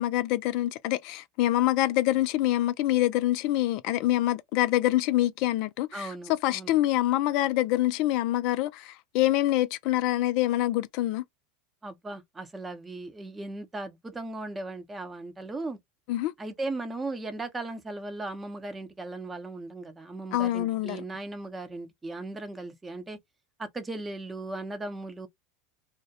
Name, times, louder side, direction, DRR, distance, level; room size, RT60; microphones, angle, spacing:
voice 1, 0.0-11.2 16.1-16.3 20.3-21.0, left 15 dB, 55° left, 0.3 m, -26 dB
voice 2, 5.9-6.8 11.8-15.8 16.4-23.2 23.6-25.3, right 2 dB, 15° right, 0.6 m, -37 dB
2.3 x 2.1 x 2.7 m
hypercardioid pair, 90°, 0 cm